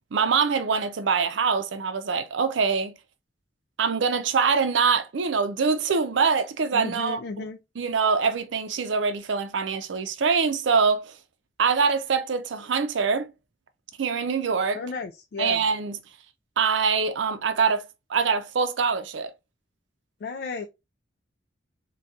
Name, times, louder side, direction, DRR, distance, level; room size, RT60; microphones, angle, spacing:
voice 1, 0.1-2.9 3.8-7.4 7.8-11.1 11.6-13.3 14.0-14.8 15.4-16.0 16.6-19.3, right 5 dB, 75° right, 0.5 m, -24 dB
voice 2, 6.7-7.6 14.7-15.6 20.2-20.7, left 4 dB, 55° left, 0.3 m, -33 dB
4.0 x 2.3 x 2.4 m
head